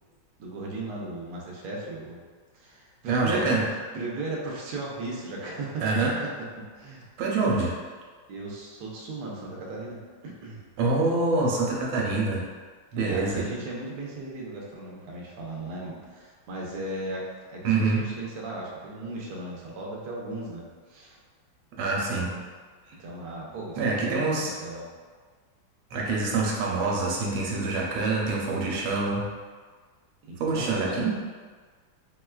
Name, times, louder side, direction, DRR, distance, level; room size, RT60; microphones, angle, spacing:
voice 1, 0.4-2.2 2.5-6.1 6.6-7.1 7.4-7.7 8.3-10.0 10.2-10.6 12.9-21.2 23.0-24.8 30.2-31.0, right 2 dB, 70° right, -3 dB, 1.1 m, -36 dB
voice 2, 3.1-3.6 5.8-6.1 7.2-7.7 10.8-12.4 12.9-13.4 17.6-18.1 21.8-22.3 23.8-24.5 25.9-29.3 30.4-31.1, right 3 dB, 90° right, -3 dB, 1.4 m, -25 dB
4.3 x 2.2 x 2.3 m, 1.5 s
omnidirectional pair, 2.1 m